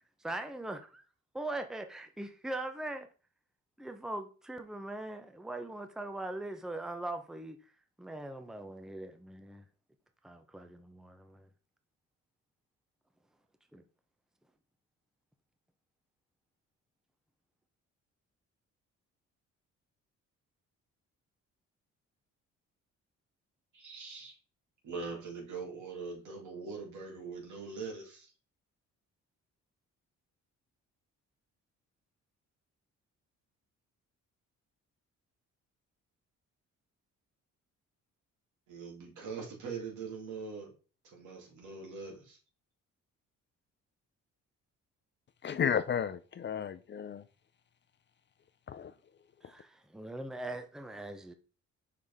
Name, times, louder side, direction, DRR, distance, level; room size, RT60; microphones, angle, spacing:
voice 1, 0.2-1.0 1.3-3.1 3.8-7.6 8.0-9.6 10.2-11.5 13.7-13.8 49.4-51.3, right 2 dB, ahead, 0.8 m, -41 dB
voice 2, 23.7-24.3 24.8-28.3 38.7-40.7 41.1-42.4, right 4 dB, 80° right, 2.8 m, -42 dB
voice 3, 45.4-47.2 48.7-48.9, left 8 dB, 40° left, 0.5 m, -33 dB
5.7 x 5.0 x 3.6 m
cardioid pair, 90°, 30 cm